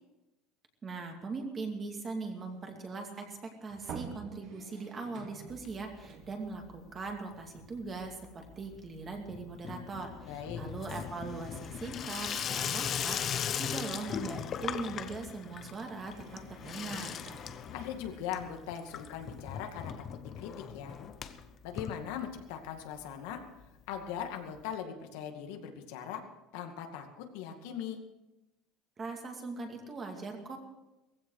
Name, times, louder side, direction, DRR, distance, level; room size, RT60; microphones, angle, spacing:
voice 1, 0.8-16.2 16.6-17.2 29.0-30.6, right 3 dB, 20° right, 3 dB, 2.2 m, -40 dB
sound 1, 1.8-8.2 8.5-8.7 9.8-10.0 10.4-20.2, right 6 dB, 45° right, 1.8 m, -52 dB
Water tap faucet / Sink (filling or washing), 5.5-6.3 6.5-7.1 7.4-22.7 23.0-23.1 23.3-23.4 23.6-23.7 24.7-24.8, left 8 dB, 30° left, 0.8 m, -39 dB
voice 2, 10.2-10.6 17.7-20.9 21.6-23.4 23.9-26.2 26.5-28.0, left 8 dB, 75° left, 4 dB, 2.2 m, -40 dB
18.5 x 15.5 x 4.8 m, 0.97 s
cardioid pair, 170°, 0 cm